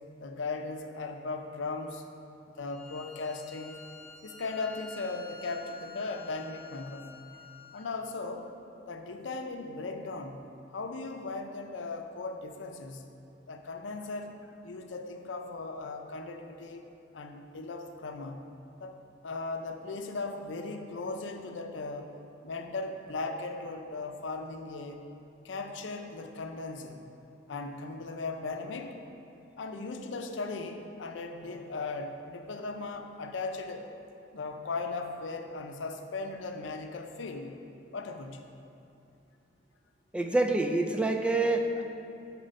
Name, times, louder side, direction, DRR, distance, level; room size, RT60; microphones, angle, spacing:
voice 1, 0.2-2.0 2.6-3.8 4.2-7.4 7.7-8.5 8.9-13.1 13.5-16.8 17.1-18.5 18.8-19.0 19.2-22.1 22.4-25.0 25.4-27.0 27.5-29.0 29.6-33.9 34.3-37.6 37.9-38.4, left 3 dB, 85° left, 5 dB, 0.6 m, -38 dB
Bowed string instrument, 2.6-7.9, left 3 dB, 10° left, 1.6 m, -49 dB
voice 2, 40.1-41.8, right 2 dB, 5° right, 4 dB, 0.4 m, -27 dB
7.6 x 4.5 x 5.3 m, 2.6 s
head